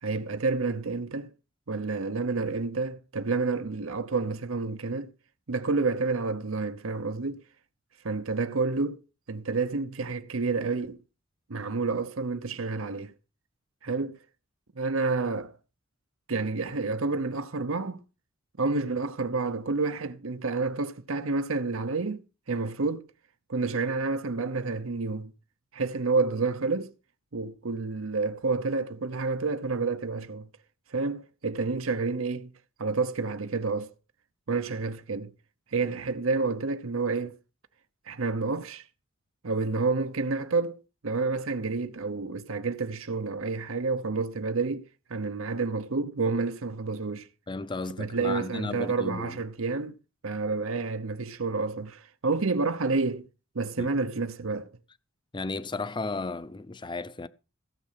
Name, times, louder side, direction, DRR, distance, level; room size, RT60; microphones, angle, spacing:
voice 1, 0.0-1.3 1.7-5.1 5.5-7.4 8.0-9.0 9.3-11.0 11.5-13.1 13.8-14.2 14.8-15.6 16.3-18.0 18.6-23.1 23.5-25.3 25.7-26.9 27.3-30.5 30.9-32.5 32.8-33.9 34.5-35.3 35.7-37.4 38.1-38.8 39.4-47.3 48.0-50.0 50.2-53.3 53.5-54.7, right 4 dB, 85° right, 0.9 m, -29 dB
voice 2, 47.5-49.4 53.8-53.9 55.3-57.3, left 3 dB, 20° left, 0.6 m, -34 dB
16.5 x 7.5 x 5.8 m
head